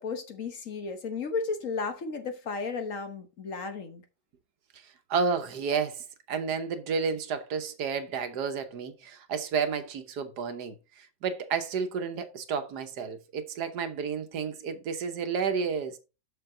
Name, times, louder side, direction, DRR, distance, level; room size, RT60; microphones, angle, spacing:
voice 1, 0.0-4.0, left 4 dB, 55° left, 1.4 m, -34 dB
voice 2, 5.1-16.0, right 5 dB, 75° right, 1.5 m, -31 dB
6.9 x 6.4 x 3.7 m
omnidirectional pair, 1.8 m